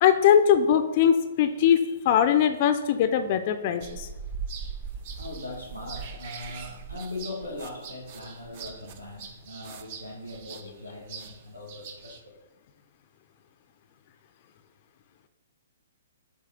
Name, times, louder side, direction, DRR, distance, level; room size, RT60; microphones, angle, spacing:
voice 1, 0.0-4.1, left 9 dB, 40° left, 9 dB, 0.4 m, -21 dB
sound 1, 3.8-12.2, right 6 dB, 40° right, 0.5 m, -40 dB
voice 2, 5.2-12.4, left 2 dB, 90° right, 0 dB, 1.6 m, -40 dB
7.4 x 3.6 x 3.7 m, 1.1 s
figure-of-eight pair, 120°, 0 cm